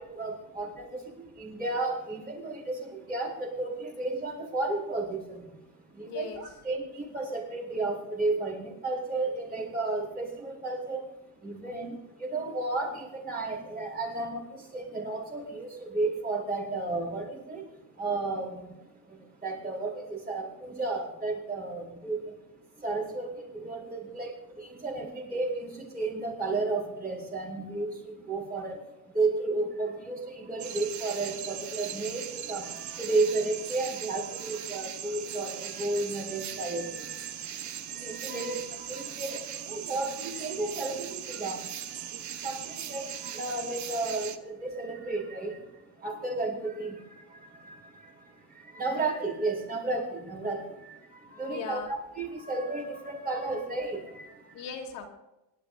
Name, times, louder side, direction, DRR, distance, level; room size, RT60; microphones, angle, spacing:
voice 1, 0.0-11.1 11.4-18.7 19.1-22.4 22.7-28.9 29.1-54.6, right 3 dB, 20° right, -2 dB, 4.6 m, -33 dB
voice 2, 6.0-6.4 38.3-38.6 51.5-51.9 54.5-55.1, left 7 dB, 60° left, 0 dB, 3.1 m, -39 dB
sound 1, 30.6-44.4, right 10 dB, 35° right, 1.1 m, -39 dB
26.0 x 11.5 x 2.6 m, 0.95 s
cardioid pair, 155°, 47 cm